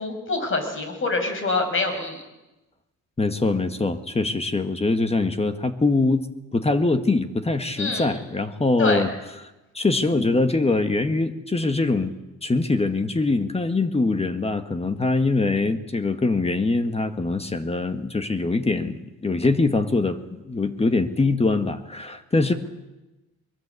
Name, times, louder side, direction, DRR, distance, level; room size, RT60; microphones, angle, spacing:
voice 1, 0.0-2.2 7.8-8.1 8.8-9.0, left 3 dB, 45° left, 6 dB, 6.3 m, -25 dB
voice 2, 3.2-6.3 6.5-9.1 9.7-12.1 12.4-22.5, left 3 dB, 20° left, 9 dB, 1.6 m, -23 dB
22.5 x 21.5 x 8.3 m, 1.0 s
cardioid pair, 90°, 30 cm